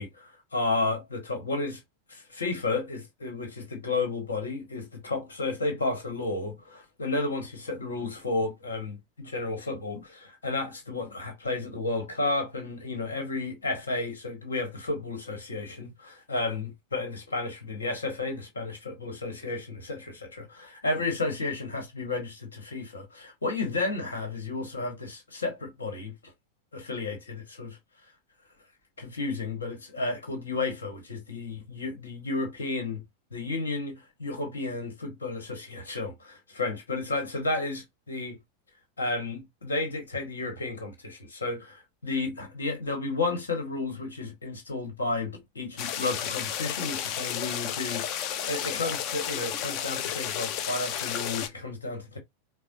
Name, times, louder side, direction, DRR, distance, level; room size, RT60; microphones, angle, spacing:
voice 1, 0.0-1.8 2.1-26.3 26.7-27.8 29.0-33.0 33.3-38.4 39.0-52.2, left 3 dB, 70° left, 1.4 m, -32 dB
sound 1, 45.8-51.5, left 9 dB, 40° left, 0.5 m, -32 dB
4.7 x 2.1 x 2.7 m
figure-of-eight pair, 90°, 0 cm